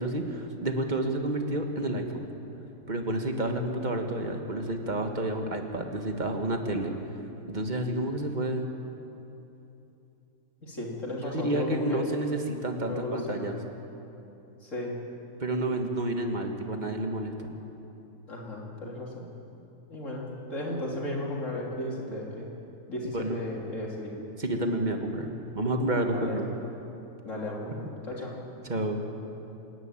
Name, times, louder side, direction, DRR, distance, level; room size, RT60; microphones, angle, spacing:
voice 1, 0.0-2.3 2.9-6.9 7.5-8.7 11.2-13.6 15.4-17.5 23.1-23.4 24.4-26.5 28.6-29.0, right 1 dB, 30° right, 4 dB, 1.7 m, -30 dB
voice 2, 10.6-12.0 12.9-13.5 14.6-14.9 18.3-19.3 19.9-20.2 20.5-22.5 22.9-24.2 26.1-26.4 27.2-28.4, left 1 dB, 50° left, -3 dB, 3.6 m, -34 dB
27.0 x 11.0 x 9.1 m, 2.9 s
omnidirectional pair, 1.7 m